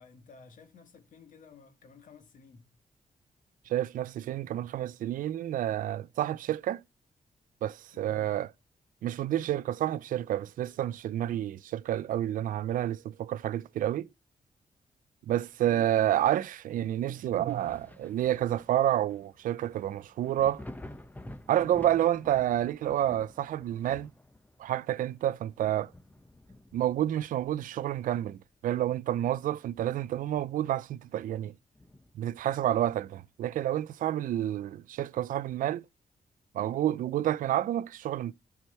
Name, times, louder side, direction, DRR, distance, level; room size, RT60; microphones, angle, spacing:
voice 1, 0.0-2.7 7.9-8.3 15.6-15.9, left 5 dB, 75° left, 1.8 m, -53 dB
voice 2, 3.7-6.8 7.6-8.5 9.0-14.1 15.3-20.6 21.5-24.1 24.6-25.9 26.7-31.5 32.2-35.8 36.5-38.3, right 12 dB, 90° right, 0.4 m, -29 dB
Thunder, 17.5-28.8 29.2-30.7 31.1-31.2 31.7-33.0 34.5-34.6, left 1 dB, 10° left, 1.0 m, -51 dB
13.5 x 4.7 x 4.3 m
cardioid pair, 95°, 13 cm